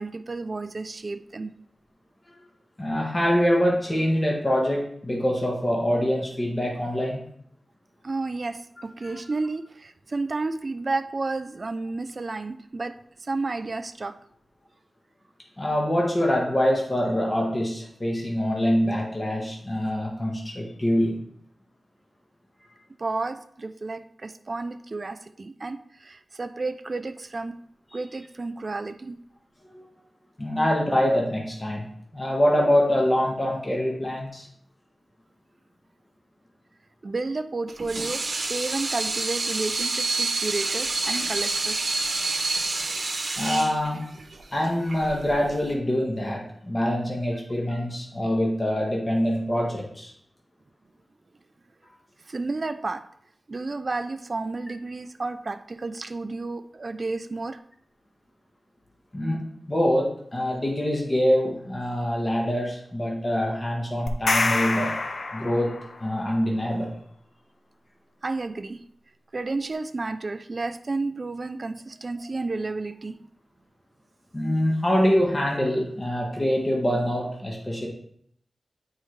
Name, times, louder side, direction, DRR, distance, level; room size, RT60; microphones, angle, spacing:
voice 1, 0.0-1.5 8.0-14.2 23.0-27.6 27.9-29.2 37.0-41.8 47.7-47.9 52.3-53.1 53.5-57.6 68.2-68.8 69.3-73.2, right 3 dB, 45° right, 9 dB, 0.3 m, -31 dB
voice 2, 2.8-7.2 9.0-9.2 15.6-21.2 29.7-29.8 30.4-31.9 32.1-34.5 43.4-44.0 44.5-50.1 59.1-64.9 65.3-66.9 74.3-77.9, equal, 25° left, -2 dB, 1.3 m, -25 dB
Water tap faucet / Sink (filling or washing), 37.7-45.7, right 3 dB, 60° right, 1.0 m, -28 dB
sound 1, 64.1-66.0, left 3 dB, 60° left, 0.5 m, -26 dB
9.1 x 4.5 x 3.2 m, 0.66 s
wide cardioid pair, 115°, 0 cm